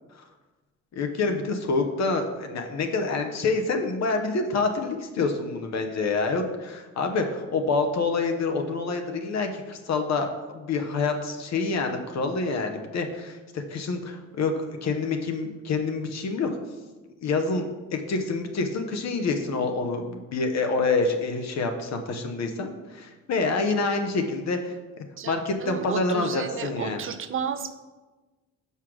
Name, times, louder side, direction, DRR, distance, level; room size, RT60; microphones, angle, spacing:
voice 1, 0.9-16.5 17.2-27.0, left 3 dB, 60° left, 5 dB, 1.0 m, -27 dB
voice 2, 25.2-27.7, right 7 dB, 45° right, 11 dB, 0.6 m, -32 dB
5.7 x 4.7 x 6.2 m, 1.2 s
cardioid pair, 90°, 30 cm